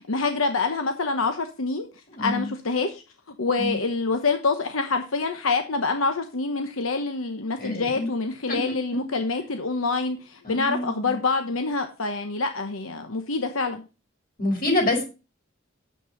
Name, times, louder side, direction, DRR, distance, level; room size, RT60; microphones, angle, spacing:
voice 1, 0.0-1.9 2.2-3.0 3.4-13.8, left 3 dB, 85° left, 7 dB, 1.1 m, -26 dB
voice 2, 2.1-2.5 3.6-3.8 7.6-8.1 8.5-9.0 10.4-11.2 14.4-15.0, left 2 dB, 45° left, 1 dB, 5.1 m, -27 dB
9.4 x 7.7 x 5.1 m, 0.30 s
head